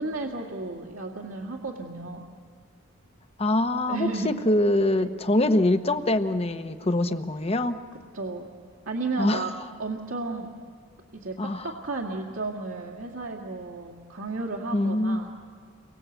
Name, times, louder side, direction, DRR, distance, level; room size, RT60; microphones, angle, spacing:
voice 1, 0.0-2.3 3.9-4.3 5.0-5.1 8.1-8.5 8.9-9.5 9.8-10.5 11.1-15.3, right 3 dB, 65° right, -1 dB, 2.1 m, -33 dB
voice 2, 3.4-7.8 9.2-9.5 11.4-11.7 14.7-15.2, left 1 dB, 30° left, 9 dB, 1.0 m, -24 dB
29.5 x 23.5 x 8.2 m, 2.3 s
head